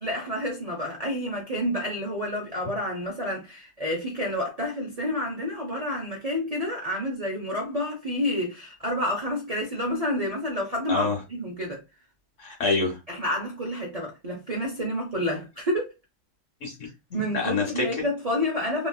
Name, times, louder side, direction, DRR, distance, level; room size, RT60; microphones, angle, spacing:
voice 1, 0.0-11.1 11.4-11.8 13.1-15.9 17.1-18.9, left 1 dB, 55° right, 0.4 m, -29 dB
voice 2, 10.9-11.2 12.4-13.0 16.6-18.0, left 3 dB, 55° left, 1.1 m, -27 dB
2.9 x 2.8 x 2.2 m
omnidirectional pair, 1.8 m